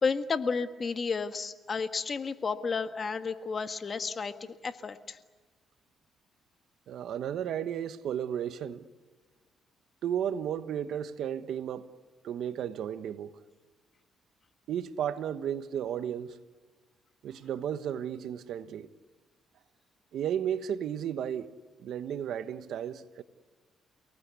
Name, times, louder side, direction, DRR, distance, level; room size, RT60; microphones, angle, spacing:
voice 1, 0.0-5.2, left 5 dB, 40° left, 1.6 m, -32 dB
voice 2, 6.9-8.9 10.0-11.9 12.2-13.3 14.7-16.4 17.2-18.9 20.1-21.5 21.8-23.2, right 9 dB, 75° right, 1.2 m, -33 dB
30.0 x 19.0 x 8.3 m
cardioid pair, 90°, 0 cm